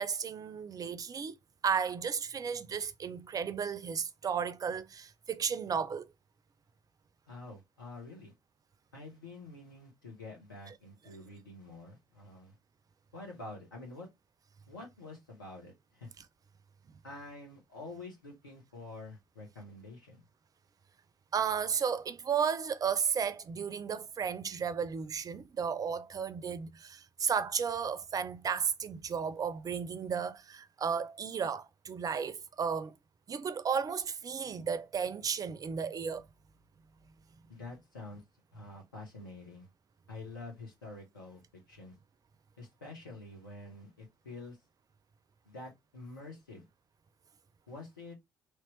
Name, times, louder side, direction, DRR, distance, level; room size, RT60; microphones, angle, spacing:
voice 1, 0.0-1.4 1.6-6.1 21.3-32.9 33.3-36.3, right 6 dB, 35° right, 0.4 m, -34 dB
voice 2, 7.3-8.3 8.9-12.5 13.1-14.1 14.7-16.1 17.0-20.2 37.5-38.2 38.5-39.7 40.1-41.4 41.7-41.9 42.6-44.6 45.4-46.7 47.7-48.1, left 2 dB, 80° left, 1.2 m, -47 dB
3.3 x 2.9 x 3.0 m
figure-of-eight pair, 45°, 11 cm